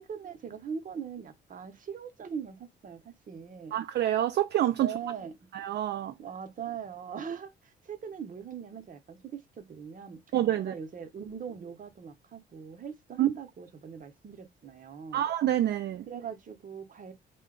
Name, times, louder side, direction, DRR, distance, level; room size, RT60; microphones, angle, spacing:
voice 1, 0.0-3.7 4.8-5.5 6.2-10.2 10.6-15.2 16.1-17.1, right 7 dB, 45° right, 0.8 m, -41 dB
voice 2, 3.7-4.9 5.5-6.1 10.3-10.7 13.2-13.3 15.1-16.1, right 12 dB, 60° right, 0.4 m, -27 dB
3.7 x 2.2 x 3.7 m
cardioid pair, 90°, 20 cm